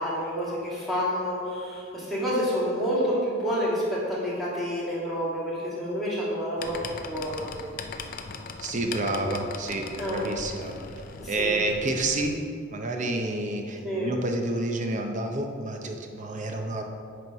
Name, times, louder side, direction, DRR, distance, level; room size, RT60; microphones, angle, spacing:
voice 1, 0.0-6.8 7.1-7.5 10.0-10.2 11.2-11.6 13.8-14.1, equal, ahead, -8 dB, 1.8 m, -28 dB
sound 1, 6.6-12.3, left 4 dB, 40° left, 0.4 m, -39 dB
voice 2, 8.6-10.7 11.3-12.4 12.7-16.8, right 2 dB, 35° right, 3 dB, 0.7 m, -29 dB
9.3 x 3.2 x 5.6 m, 2.4 s
head